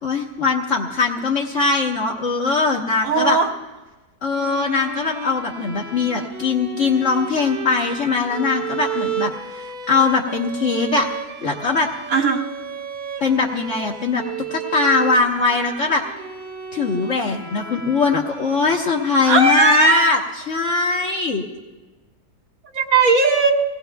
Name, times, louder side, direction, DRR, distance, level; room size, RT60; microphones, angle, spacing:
voice 1, 0.0-3.4 4.2-9.3 9.6-11.1 11.4-11.9 13.2-14.2 14.5-16.0 16.7-20.2 20.5-21.4, left 4 dB, 55° left, -1 dB, 1.5 m, -21 dB
voice 2, 3.0-3.5 12.1-12.4 19.2-20.1 22.7-23.5, right 4 dB, 65° right, 1 dB, 1.6 m, -17 dB
sound 1, 4.3-20.0, right 6 dB, 40° right, 0.8 m, -33 dB
26.0 x 18.5 x 2.3 m, 1.2 s
omnidirectional pair, 1.6 m